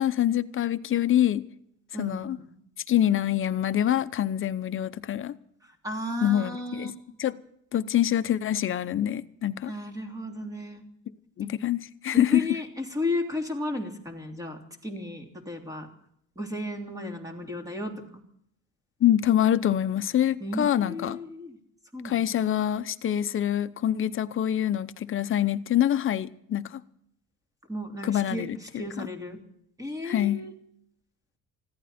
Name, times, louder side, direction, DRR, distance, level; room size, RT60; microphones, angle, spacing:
voice 1, 0.0-1.4 2.0-2.4 2.9-5.4 6.2-6.9 7.2-7.4 7.7-9.7 11.4-12.5 19.0-21.2 22.0-26.8 28.0-28.6 29.0-29.1 30.0-30.4, left 11 dB, 40° left, 0.8 m, -25 dB
voice 2, 1.9-2.5 5.6-6.9 9.6-10.8 11.4-11.5 12.1-15.9 16.3-17.9 20.4-21.6 21.9-22.3 27.7-29.4 29.8-30.5, left 1 dB, 10° right, 3.2 m, -34 dB
20.5 x 15.5 x 4.3 m
cardioid pair, 135°, 31 cm